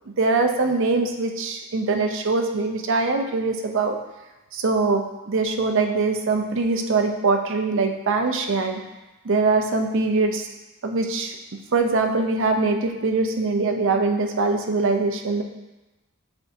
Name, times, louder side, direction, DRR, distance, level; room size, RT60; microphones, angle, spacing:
voice 1, 0.2-4.0 4.5-8.8 9.2-10.5 10.8-11.4 11.7-15.4, right 3 dB, 65° right, 4 dB, 0.6 m, -22 dB
8.2 x 4.4 x 2.7 m, 1.1 s
head